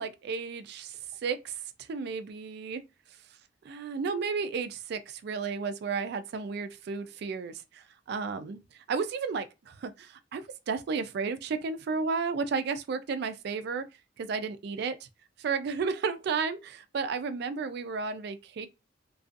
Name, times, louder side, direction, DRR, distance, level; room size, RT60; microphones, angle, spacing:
voice 1, 0.0-2.8 3.6-13.8 14.2-15.0 15.4-18.7, right 5 dB, 60° right, 0.3 m, -33 dB
2.5 x 2.3 x 2.5 m
head